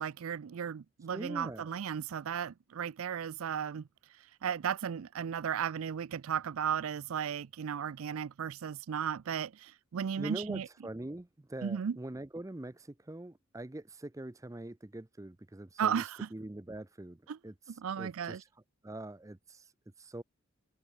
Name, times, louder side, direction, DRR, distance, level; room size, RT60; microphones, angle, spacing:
voice 1, 0.0-3.8 4.4-10.7 11.6-12.0 15.8-16.3 17.3-17.4 17.8-18.4, right 8 dB, 70° right, 0.4 m, -35 dB
voice 2, 1.1-1.7 10.2-16.0 16.3-18.5 18.8-19.7 20.0-20.2, right 1 dB, 15° right, 0.5 m, -43 dB
head